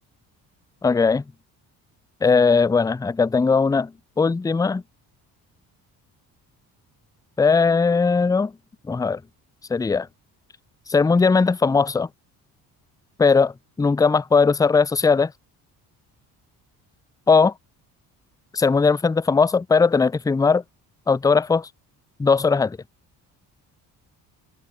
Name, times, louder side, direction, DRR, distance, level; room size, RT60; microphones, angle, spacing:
voice 1, 0.8-1.2 2.2-3.9 4.2-4.8 7.4-8.5 8.9-9.2 9.7-10.1 10.9-12.1 13.2-13.5 13.8-15.3 17.3-17.5 18.5-20.6 21.1-21.7 22.2-22.8, left 4 dB, 10° left, 0.4 m, -18 dB
cardioid pair, 80°, 39 cm